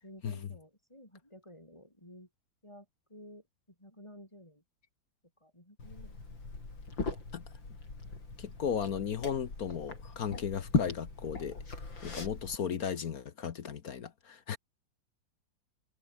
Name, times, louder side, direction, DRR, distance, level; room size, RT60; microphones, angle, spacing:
voice 1, 0.0-2.3 2.6-3.4 3.8-4.6 5.4-6.2, left 1 dB, 15° left, 7.0 m, -53 dB
Liquid, 5.8-12.6, left 3 dB, 80° left, 6.0 m, -38 dB
voice 2, 8.4-11.6 12.0-14.6, left 7 dB, 55° left, 1.4 m, -35 dB
omnidirectional pair, 2.0 m